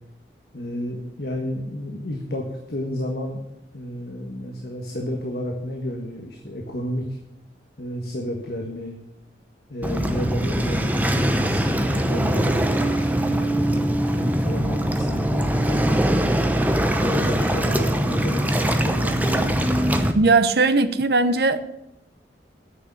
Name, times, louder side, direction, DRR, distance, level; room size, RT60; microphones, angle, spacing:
voice 1, 0.5-3.4 3.7-7.2 7.8-9.0 9.7-13.8 14.1-16.0 17.0-19.4, equal, 60° left, 1.5 m, -31 dB
Waves surf, 9.8-20.1, right 1 dB, 10° right, 0.8 m, -22 dB
voice 2, 20.1-21.7, right 3 dB, 60° right, 0.8 m, -19 dB
9.6 x 6.6 x 8.5 m
head